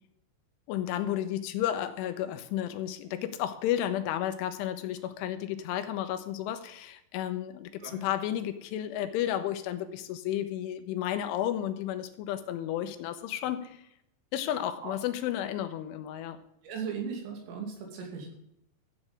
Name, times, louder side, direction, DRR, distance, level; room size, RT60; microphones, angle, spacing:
voice 1, 0.7-13.8 14.3-16.4, left 11 dB, 85° left, 10 dB, 3.2 m, -32 dB
voice 2, 16.6-18.3, right 6 dB, 85° right, 1 dB, 5.4 m, -37 dB
14.5 x 8.5 x 5.2 m, 0.76 s
omnidirectional pair, 5.7 m